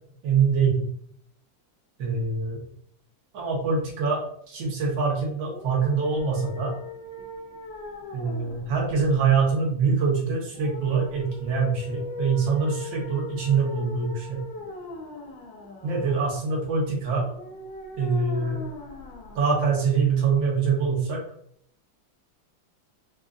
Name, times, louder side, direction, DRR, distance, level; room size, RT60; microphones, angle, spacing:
voice 1, 0.2-0.9 2.0-2.7 3.3-6.7 8.1-14.4 15.8-17.3 18.0-18.7 19.4-21.2, right 5 dB, 80° right, -3 dB, 1.8 m, -24 dB
sound 1, 5.5-20.4, left 3 dB, 80° left, 1.5 m, -40 dB
5.1 x 2.5 x 2.4 m, 0.66 s
omnidirectional pair, 2.1 m